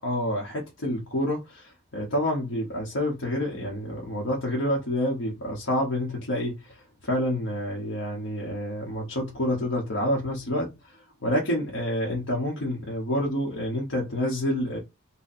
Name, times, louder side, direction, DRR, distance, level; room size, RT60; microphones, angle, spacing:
voice 1, 0.0-14.8, left 1 dB, 80° left, 0.9 m, -28 dB
4.1 x 2.2 x 2.6 m
head